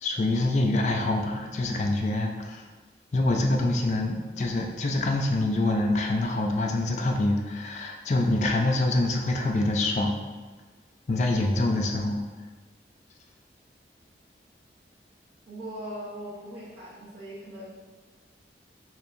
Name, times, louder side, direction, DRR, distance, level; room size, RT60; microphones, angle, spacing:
voice 1, 0.0-2.6 3.1-10.1 11.1-12.2, left 2 dB, 40° left, 2 dB, 0.3 m, -25 dB
voice 2, 15.5-17.7, equal, 85° right, -9 dB, 0.9 m, -39 dB
4.3 x 2.7 x 2.5 m, 1.3 s
head